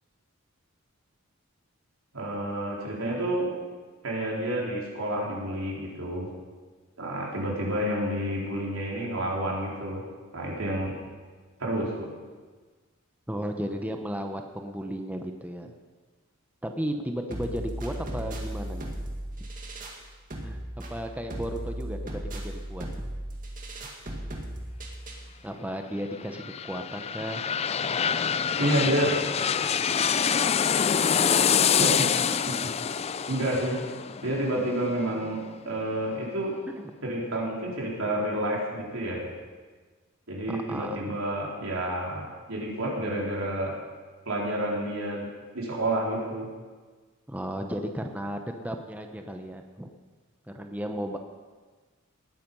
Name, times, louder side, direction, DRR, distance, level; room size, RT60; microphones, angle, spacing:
voice 1, 2.1-3.5 4.0-6.3 7.0-10.0 10.3-10.9 11.6-12.1 28.6-29.2 31.8-32.1 32.5-32.6 33.3-33.8 34.2-36.5 37.0-39.3 40.3-43.7 44.2-45.3 45.5-46.5, right 1 dB, 90° right, -3 dB, 4.1 m, -29 dB
voice 2, 13.3-15.7 16.6-18.9 20.4-22.9 25.4-27.4 28.7-28.9 29.2-29.3 36.8-36.9 40.5-41.2 47.3-49.9 50.5-51.2, equal, 5° right, 4 dB, 0.8 m, -34 dB
sound 1, 17.3-25.3, right 1 dB, 40° right, 1.9 m, -36 dB
sound 2, 26.1-35.8 36.2-36.3, left 7 dB, 30° left, 0.4 m, -26 dB
19.0 x 9.3 x 5.5 m, 1.4 s
head